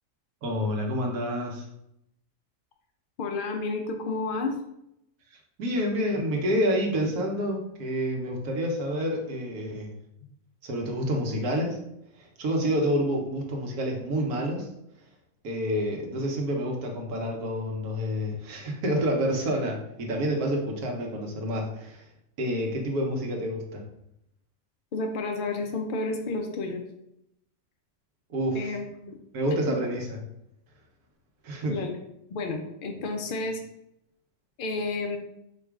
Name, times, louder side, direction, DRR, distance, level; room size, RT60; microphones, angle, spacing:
voice 1, 0.4-1.6 5.6-9.9 10.6-11.8 12.2-14.7 15.4-22.0 22.4-23.8 28.3-28.7 29.3-30.2 31.4-31.7, equal, 90° right, 0 dB, 1.4 m, -28 dB
voice 2, 3.2-4.6 10.2-10.3 24.9-26.8 28.5-29.2 29.7-29.8 31.7-31.9 32.3-33.6 34.6-35.2, left 3 dB, 85° left, 3 dB, 0.4 m, -31 dB
4.7 x 2.4 x 4.7 m, 0.79 s
omnidirectional pair, 1.6 m